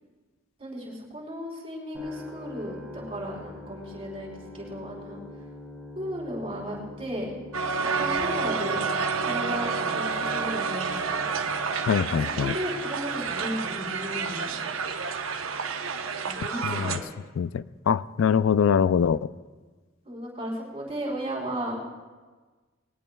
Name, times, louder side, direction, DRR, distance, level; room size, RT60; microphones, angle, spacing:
voice 1, 0.6-5.2 5.9-7.3 7.8-8.8 9.2-11.2 12.1-14.6 16.2-17.0 20.0-21.8, equal, 30° right, -4 dB, 4.4 m, -35 dB
sound 1, 1.9-17.9, left 2 dB, 10° right, 3.3 m, -46 dB
Crowd, 7.5-17.0, right 5 dB, 85° right, 0.9 m, -29 dB
voice 2, 11.9-12.5 16.6-17.0 17.4-19.3, left 7 dB, 80° left, 16 dB, 0.3 m, -23 dB
21.0 x 19.0 x 2.3 m, 1.3 s
head